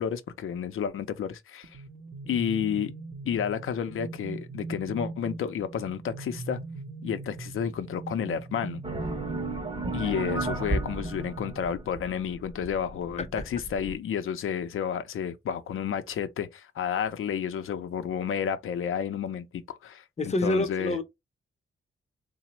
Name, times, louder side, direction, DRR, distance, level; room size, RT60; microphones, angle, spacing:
voice 1, 0.0-1.8 2.3-2.9 3.3-6.6 7.0-8.8 9.9-21.0, left 8 dB, 75° left, 0.5 m, -31 dB
sound 1, 1.6-12.1, right 3 dB, 65° right, 0.7 m, -40 dB
sound 2, 8.8-13.9, right 2 dB, 25° right, 0.6 m, -34 dB
voice 2, 20.2-21.0, left 1 dB, 30° left, 0.6 m, -27 dB
3.2 x 2.0 x 2.9 m
wide cardioid pair, 115°, 21 cm